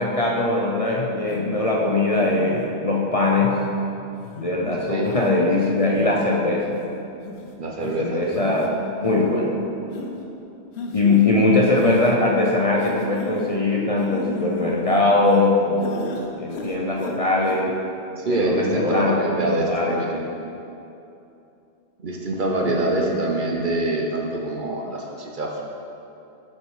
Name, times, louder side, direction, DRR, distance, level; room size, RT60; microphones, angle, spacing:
voice 1, 0.0-3.6 4.4-6.8 7.8-8.6 9.0-9.6 10.9-17.7 18.3-20.0 22.7-22.8, left 2 dB, 40° left, -2 dB, 0.7 m, -21 dB
sound 1, 1.3-1.5 2.1-2.7 3.2-3.7 4.2-4.5 5.1-5.3 5.8-6.3 6.8-6.9 7.3-7.5 7.8-7.9 8.3-8.7 9.0-9.2 9.9-10.1 10.7-11.3 11.7-12.1 12.8-13.5 14.0-15.5 15.8-16.2 16.5-17.2 17.4-17.6, left 4 dB, 75° left, 1.0 m, -34 dB
voice 2, 7.6-8.6 18.2-20.2 22.0-25.6, right 2 dB, 50° right, 0 dB, 0.9 m, -25 dB
7.7 x 5.7 x 4.8 m, 2.8 s
omnidirectional pair, 1.1 m